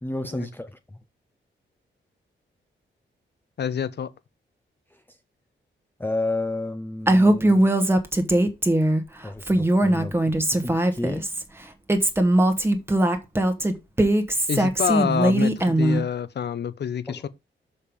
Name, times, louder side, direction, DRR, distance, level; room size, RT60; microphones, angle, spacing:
voice 1, 0.0-1.0 5.1-5.2 6.0-7.7 9.2-10.2 10.6-11.3 17.1-17.3, left 2 dB, 10° left, 0.7 m, -31 dB
voice 2, 3.6-4.1 14.5-17.3, left 8 dB, 55° left, 0.8 m, -27 dB
Female speech woman speaking, 7.1-9.0 9.4-11.4 11.9-16.0, right 1 dB, 10° right, 1.2 m, -20 dB
6.5 x 5.4 x 5.2 m
wide cardioid pair, 140°, 20 cm